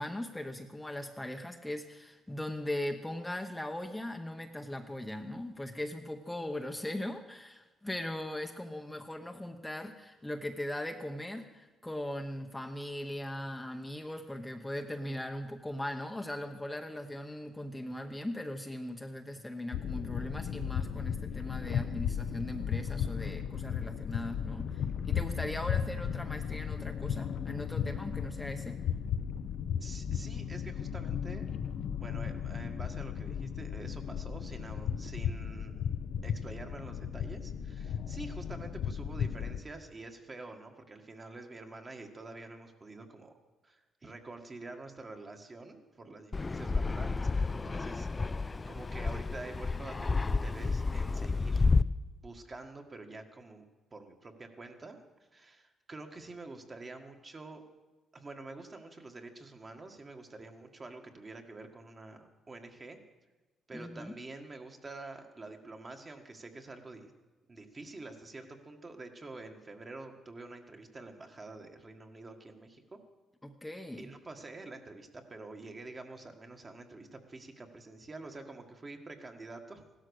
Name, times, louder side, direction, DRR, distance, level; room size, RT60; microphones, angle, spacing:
voice 1, 0.0-28.8 63.7-64.2 73.4-74.1, left 1 dB, 10° left, 4 dB, 0.9 m, -39 dB
sound 1, 19.7-39.6, left 8 dB, 70° left, 0.7 m, -35 dB
voice 2, 29.8-31.5 32.0-43.3 43.6-51.7 52.2-55.0 55.3-57.7 58.1-63.0 63.7-67.1 67.5-73.0 74.0-79.8, right 2 dB, 30° right, 4 dB, 1.8 m, -47 dB
Fixed-wing aircraft airplane, 46.3-51.8, left 3 dB, 25° left, 0.5 m, -30 dB
16.0 x 12.5 x 6.5 m, 1.2 s
cardioid pair, 90°, 0 cm